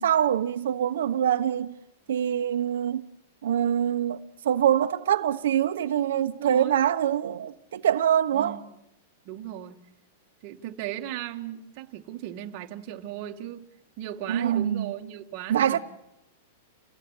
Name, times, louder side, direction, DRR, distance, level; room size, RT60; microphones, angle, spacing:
voice 1, 0.0-1.7 2.1-3.0 3.4-8.6 14.3-14.9 15.5-15.8, right 10 dB, 75° right, 1.2 m, -24 dB
voice 2, 6.4-6.8 8.3-8.6 9.3-9.8 10.4-13.7 14.0-15.8, right 12 dB, 30° right, 2.0 m, -36 dB
29.0 x 19.5 x 7.4 m
supercardioid pair, 175°, 0 cm